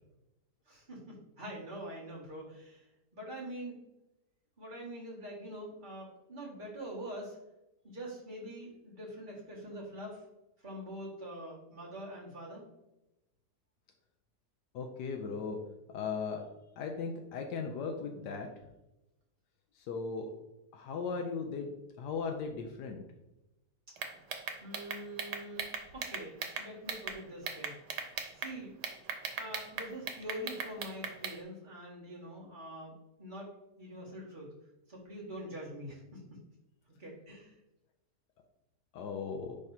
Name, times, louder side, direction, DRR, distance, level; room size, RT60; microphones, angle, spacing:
voice 1, 0.7-2.8 3.1-3.8 4.6-7.4 7.8-10.2 10.6-12.6 24.6-25.7 25.9-27.8 28.3-28.7 29.4-33.5 33.8-34.5 34.9-36.2 37.0-37.6, right 1 dB, 30° right, -5 dB, 2.0 m, -44 dB
voice 2, 14.7-15.6 15.9-16.4 16.8-18.5 19.8-20.3 20.7-21.7 22.0-23.0 38.9-39.6, left 5 dB, 90° left, 3 dB, 1.3 m, -37 dB
sound 1, 24.0-27.2 27.5-28.5 28.8-31.4, right 6 dB, 90° right, 1.4 m, -38 dB
9.8 x 3.6 x 2.8 m, 0.95 s
omnidirectional pair, 1.8 m